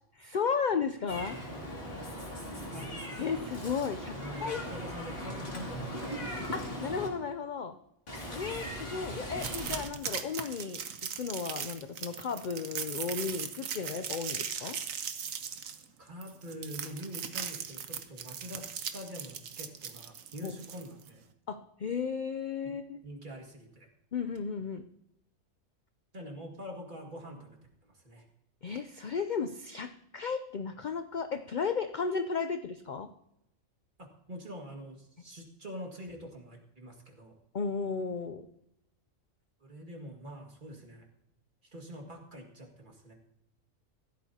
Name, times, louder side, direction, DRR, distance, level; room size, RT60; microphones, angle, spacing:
voice 1, 0.1-1.4 3.2-4.6 6.5-7.8 8.3-14.8 20.4-20.6 21.5-23.0 24.1-24.8 28.6-33.1 37.5-38.5, left 5 dB, 65° left, 9 dB, 0.4 m, -34 dB
Meow, 1.1-7.1 8.1-9.8, equal, 45° left, 2.8 m, -39 dB
voice 2, 4.2-6.5 16.0-21.2 22.6-22.7 23.0-23.9 26.1-28.3 34.0-37.4 39.6-41.1 41.6-43.1, equal, 35° right, 1 dB, 2.2 m, -45 dB
sound 1, 9.4-21.1, right 7 dB, 70° right, 1.3 m, -39 dB
15.5 x 12.5 x 2.8 m, 0.78 s
omnidirectional pair, 1.5 m